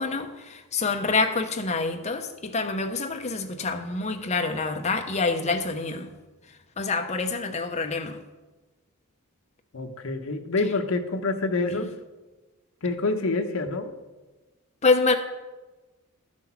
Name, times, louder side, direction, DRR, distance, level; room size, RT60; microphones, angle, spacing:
voice 1, 0.0-6.1 6.8-8.2 11.7-11.9 14.8-15.1, left 3 dB, 30° left, 6 dB, 0.8 m, -26 dB
voice 2, 9.7-11.9 12.8-13.9, left 3 dB, 65° left, 4 dB, 0.9 m, -27 dB
13.0 x 6.2 x 5.7 m, 1.2 s
head